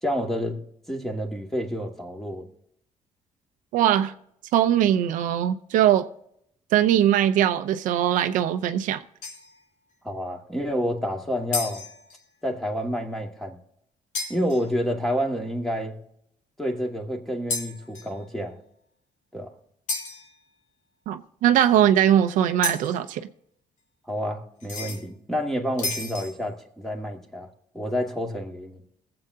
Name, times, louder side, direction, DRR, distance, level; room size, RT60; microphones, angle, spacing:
voice 1, 0.0-0.6 0.9-2.5 10.0-11.8 12.4-13.6 14.3-16.0 16.6-18.6 19.3-19.5 24.1-27.5 27.7-28.8, equal, ahead, 2.2 m, -29 dB
voice 2, 3.7-4.1 4.5-6.1 6.7-9.0 21.1-23.2, right 11 dB, 90° right, 0.7 m, -21 dB
sound 1, 9.2-9.6 11.5-12.2 14.1-14.7 17.5-18.2 19.9-20.3 22.6-23.0 24.6-25.0 25.8-26.4, left 3 dB, 70° left, 2.8 m, -32 dB
21.0 x 7.8 x 2.8 m
cardioid pair, 95°, 13 cm